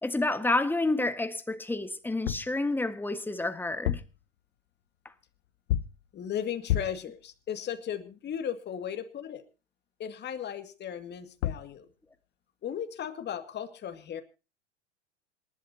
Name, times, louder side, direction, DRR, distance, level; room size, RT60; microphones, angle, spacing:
voice 1, 0.0-4.0, left 2 dB, 5° left, 1.6 m, -29 dB
sound 1, 2.1-2.6 3.7-4.2 5.7-6.1 6.7-7.1 11.1-11.2 11.4-11.7, left 12 dB, 60° left, 0.9 m, -30 dB
voice 2, 6.1-9.4 10.0-11.9 12.6-14.2, left 9 dB, 30° left, 2.2 m, -36 dB
27.0 x 11.5 x 2.8 m
hypercardioid pair, 95°, 37 cm